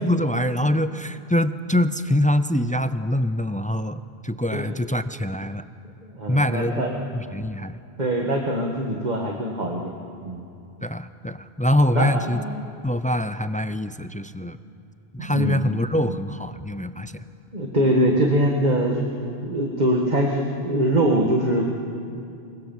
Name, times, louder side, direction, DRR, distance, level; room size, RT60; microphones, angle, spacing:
voice 1, 0.0-5.7 6.3-6.8 7.1-7.8 10.8-12.4 12.8-14.6 15.1-17.2, left 1 dB, 10° left, 12 dB, 0.4 m, -24 dB
voice 2, 6.0-7.1 8.0-9.9 10.2-10.4 11.9-12.7 15.2-16.2 17.5-19.0 19.4-21.7, right 1 dB, 40° right, 0 dB, 2.0 m, -23 dB
24.5 x 23.0 x 7.4 m, 2.6 s
omnidirectional pair, 1.1 m